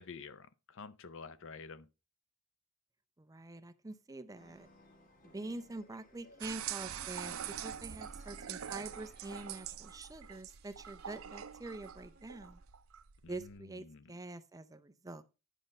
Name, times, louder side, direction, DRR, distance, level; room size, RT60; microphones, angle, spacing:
voice 1, 0.0-1.9 13.2-13.6 13.9-14.1, left 5 dB, 65° left, 0.6 m, -49 dB
voice 2, 3.2-4.7 5.2-12.6 13.3-15.2, right 2 dB, 15° right, 0.6 m, -46 dB
sound 1, 4.3-9.6, left 1 dB, 40° left, 1.7 m, -62 dB
sound 2, 6.3-12.7, right 4 dB, 45° right, 1.5 m, -62 dB
sound 3, 6.4-13.6, right 9 dB, 70° right, 0.6 m, -44 dB
10.0 x 5.2 x 5.3 m
head